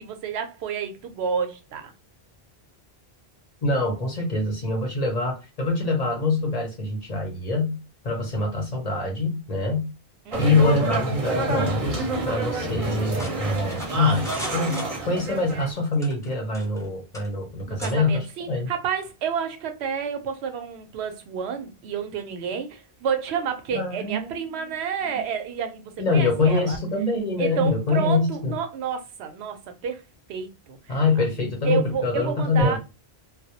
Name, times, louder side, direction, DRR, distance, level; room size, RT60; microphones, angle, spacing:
voice 1, 0.0-1.9 10.3-10.6 17.7-26.8 27.4-30.0 30.3-31.0 31.6-32.8, right 7 dB, 85° right, 0.8 m, -30 dB
voice 2, 3.6-9.9 10.4-18.7 23.7-24.3 26.0-28.6 30.9-32.8, left 3 dB, 45° left, 0.7 m, -24 dB
sound 1, 10.3-15.7, right 2 dB, 40° right, 0.7 m, -28 dB
sound 2, 13.1-15.4 15.9-16.9 17.1-17.3 17.8-18.0, left 1 dB, 5° left, 0.4 m, -38 dB
2.2 x 2.0 x 2.7 m
omnidirectional pair, 1.1 m